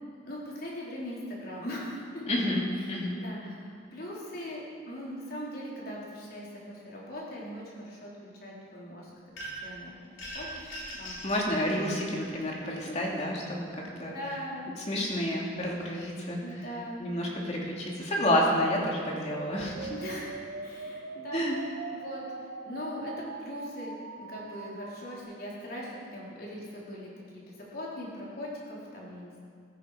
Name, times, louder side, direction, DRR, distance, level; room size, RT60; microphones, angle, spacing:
voice 1, 0.2-2.2 3.1-9.1 9.6-9.9 10.3-11.3 12.8-13.0 13.9-14.7 16.4-17.0 19.9-21.5 21.9-22.2 22.6-23.9 24.3-29.5, equal, 50° left, -5 dB, 3.9 m, -40 dB
voice 2, 2.3-3.1 11.2-14.1 14.9-16.7 17.0-19.9 21.3-21.6, left 1 dB, 35° left, -2 dB, 2.6 m, -29 dB
sound 1, 9.4-9.8 10.2-11.5, right 1 dB, 80° left, 4.2 m, -40 dB
sound 2, 18.2-25.2, right 4 dB, 70° right, 0.7 m, -42 dB
15.0 x 14.5 x 5.0 m, 2.3 s
head